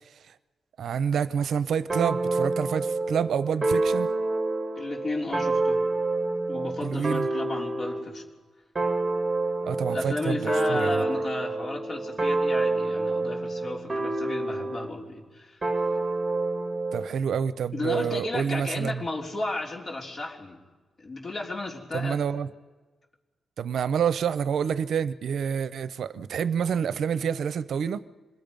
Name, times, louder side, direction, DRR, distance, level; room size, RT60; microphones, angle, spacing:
voice 1, 0.8-4.1 6.8-7.3 9.6-11.0 16.9-19.0 21.9-22.5 23.6-28.0, right 7 dB, 75° right, 0.6 m, -28 dB
sound 1, 1.9-8.1 8.7-15.0 15.6-17.1, right 2 dB, 20° right, 1.9 m, -28 dB
voice 2, 4.8-5.8 6.5-8.2 9.9-15.7 17.7-20.6 21.0-22.2, left 2 dB, 40° left, 3.6 m, -33 dB
26.0 x 21.5 x 5.3 m
cardioid pair, 105°, 0 cm